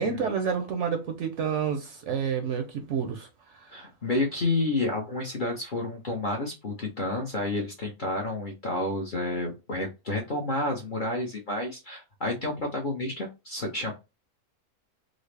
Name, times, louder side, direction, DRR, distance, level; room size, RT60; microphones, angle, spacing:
voice 1, 0.0-3.8, right 7 dB, 65° right, 0.8 m, -29 dB
voice 2, 3.7-13.9, left 2 dB, 45° left, 0.7 m, -30 dB
3.8 x 2.0 x 3.2 m
omnidirectional pair, 1.6 m